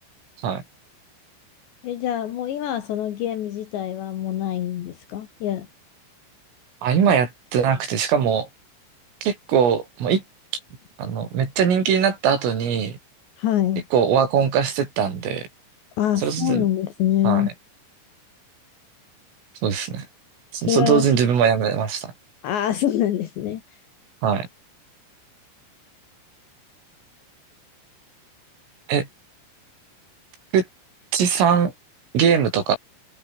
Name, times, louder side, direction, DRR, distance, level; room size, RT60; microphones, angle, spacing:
voice 1, 1.8-5.7 13.4-13.8 16.0-17.5 20.7-21.1 22.4-23.6, left 11 dB, 65° left, 3.7 m, -24 dB
voice 2, 6.8-8.5 9.2-10.2 11.0-13.0 13.9-15.5 16.2-16.7 17.2-17.5 19.6-20.1 20.5-22.1 24.2-24.5 28.9-29.1 30.5-30.7 31.1-31.7 32.1-32.8, right 7 dB, 75° right, 7.6 m, -21 dB
omnidirectional pair, 5.9 m